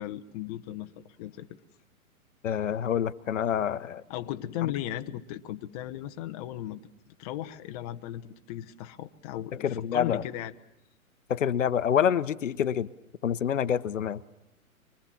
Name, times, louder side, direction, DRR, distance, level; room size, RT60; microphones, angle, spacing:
voice 1, 0.0-1.5 4.1-6.8 7.2-10.5, left 13 dB, 25° left, 7 dB, 0.9 m, -36 dB
voice 2, 2.4-4.0 9.6-10.2 11.3-12.9 13.2-14.2, left 9 dB, 60° left, 13 dB, 1.0 m, -27 dB
25.0 x 24.0 x 7.2 m, 0.93 s
figure-of-eight pair, 125°, 43 cm